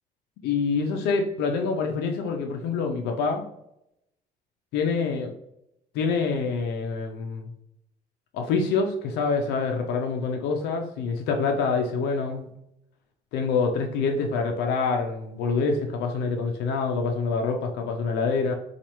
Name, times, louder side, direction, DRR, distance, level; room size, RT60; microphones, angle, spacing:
voice 1, 0.4-3.5 4.7-5.3 5.9-7.5 8.3-12.5 13.3-18.5, left 4 dB, 85° left, 4 dB, 0.5 m, -26 dB
4.3 x 2.4 x 2.9 m, 0.81 s
cardioid pair, 110°, 17 cm